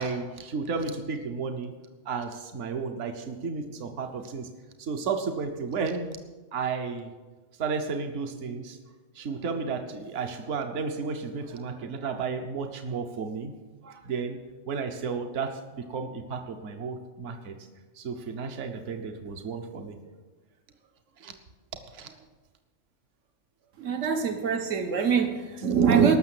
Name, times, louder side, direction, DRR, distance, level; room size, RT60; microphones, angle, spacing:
voice 1, 0.0-1.7 2.1-4.5 4.8-6.1 6.5-7.1 7.6-8.8 9.1-13.5 13.8-14.4 14.7-15.6 15.9-17.6 18.0-20.0 21.2-21.3 21.9-22.2, right 5 dB, 70° right, 5 dB, 1.3 m, -33 dB
voice 2, 23.8-26.2, right 6 dB, 85° right, 6 dB, 1.4 m, -23 dB
19.0 x 6.5 x 7.7 m, 1.3 s
omnidirectional pair, 1.3 m